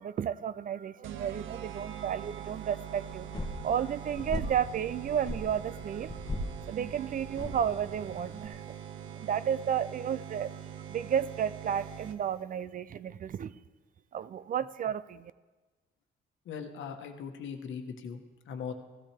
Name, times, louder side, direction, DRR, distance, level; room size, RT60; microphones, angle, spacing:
voice 1, 0.0-6.2 6.7-8.7 9.2-10.6 10.9-13.5 14.1-15.3, right 8 dB, 45° right, 17 dB, 0.4 m, -32 dB
sound 1, 1.0-12.4, right 9 dB, 90° right, 0.7 m, -43 dB
sound 2, 3.1-8.5, left 1 dB, 20° left, 1.5 m, -40 dB
voice 2, 16.4-18.7, left 6 dB, 75° left, 6 dB, 1.2 m, -40 dB
16.0 x 13.0 x 3.3 m, 1.3 s
cardioid pair, 90°, 20 cm